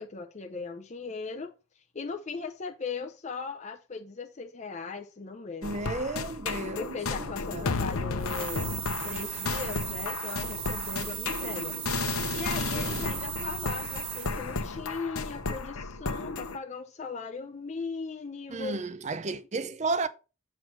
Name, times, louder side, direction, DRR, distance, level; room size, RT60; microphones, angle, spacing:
voice 1, 0.0-5.8 6.8-8.7 9.0-11.8 12.3-18.8, left 4 dB, 30° left, 0.5 m, -38 dB
sound 1, 5.6-16.6, left 4 dB, 80° left, 0.7 m, -33 dB
voice 2, 5.6-7.7 12.7-13.1 18.5-20.1, right 3 dB, 30° right, 0.5 m, -33 dB
sound 2, 8.2-14.6, right 13 dB, 75° right, 0.6 m, -37 dB
7.5 x 3.2 x 5.9 m
head